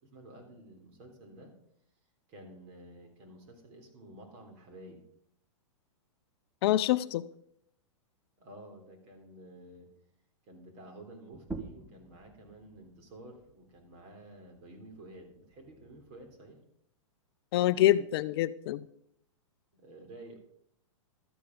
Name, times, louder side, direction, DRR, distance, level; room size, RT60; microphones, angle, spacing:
voice 1, 0.0-1.5 2.3-5.0 8.4-9.9 10.4-16.6 19.7-20.4, right 1 dB, 40° right, 3 dB, 3.5 m, -51 dB
voice 2, 6.6-7.2 17.5-18.9, left 14 dB, 50° left, 14 dB, 0.5 m, -26 dB
sound 1, 11.3-16.5, right 3 dB, 10° right, 0.9 m, -48 dB
12.5 x 8.7 x 5.3 m, 0.71 s
hypercardioid pair, 140°, 17 cm